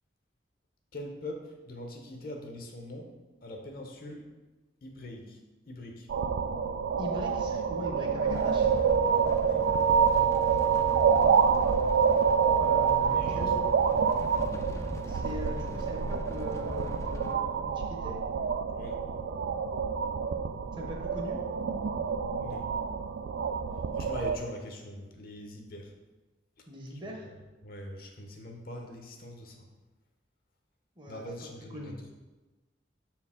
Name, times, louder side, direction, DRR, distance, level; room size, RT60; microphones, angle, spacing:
voice 1, 0.9-3.1 3.4-4.3 4.8-5.4 5.7-6.1 8.2-8.3 9.4-9.7 10.1-10.3 13.0-13.4 18.7-19.0 22.4-22.7 23.9-25.9 26.6-26.7 26.9-29.7 31.1-31.9, left 1 dB, 50° left, 3 dB, 0.8 m, -43 dB
sound 1, 6.1-24.4, right 6 dB, 75° right, 0.3 m, -27 dB
voice 2, 7.0-8.7 12.6-13.7 15.1-18.2 20.7-21.4 26.7-27.3 31.0-31.2 31.7-32.0, equal, 25° right, 1 dB, 0.8 m, -40 dB
sound 2, 8.3-17.3, left 1 dB, 15° left, 0.4 m, -40 dB
6.5 x 4.5 x 3.6 m, 1.1 s
head